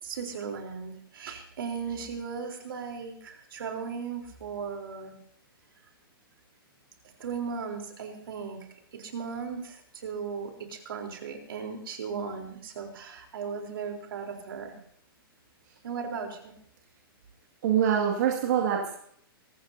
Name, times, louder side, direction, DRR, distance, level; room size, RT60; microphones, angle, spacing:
voice 1, 0.0-5.2 7.2-14.8 15.8-16.5, right 6 dB, 70° right, 3 dB, 3.9 m, -37 dB
voice 2, 17.6-18.9, right 9 dB, 45° right, -2 dB, 2.3 m, -24 dB
24.0 x 14.0 x 2.8 m, 0.66 s
hypercardioid pair, 175°, 12 cm